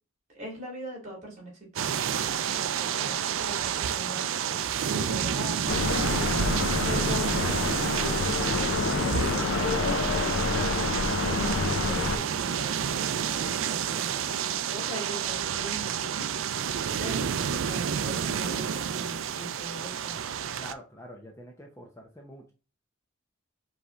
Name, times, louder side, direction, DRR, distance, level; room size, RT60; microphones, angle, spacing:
voice 1, 0.3-2.0 2.3-6.3 6.8-16.6 17.0-17.3 17.6-20.2, right 1 dB, 35° right, -1 dB, 2.4 m, -41 dB
sound 1, 1.8-20.7, right 8 dB, 65° right, 0.4 m, -29 dB
sound 2, 5.7-12.2, left 3 dB, 60° left, 0.5 m, -28 dB
voice 2, 13.9-14.6 20.5-22.5, equal, 15° left, 0 dB, 0.7 m, -47 dB
5.2 x 3.2 x 2.4 m, 0.32 s
head